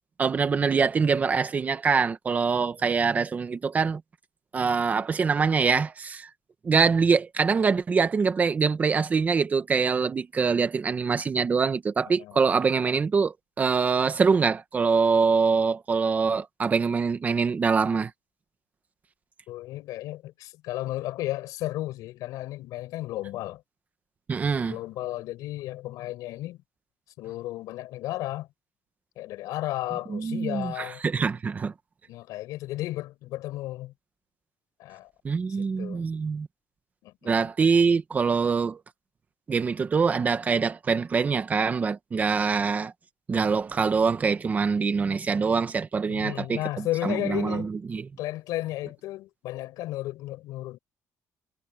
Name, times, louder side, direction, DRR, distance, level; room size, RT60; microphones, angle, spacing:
voice 1, 0.2-4.0 4.5-6.3 6.6-18.1 24.3-24.8 30.1-31.7 35.2-36.5 37.2-38.8 39.5-42.9 43.3-48.1, right 5 dB, 25° right, 1.5 m, -24 dB
voice 2, 19.5-23.6 24.6-26.6 27.2-28.5 29.2-31.0 32.1-33.9 34.8-35.1 35.6-36.0 37.0-37.5 46.1-47.7 48.2-50.8, left 16 dB, 90° left, 5.2 m, -34 dB
cardioid pair, 145°, 6 cm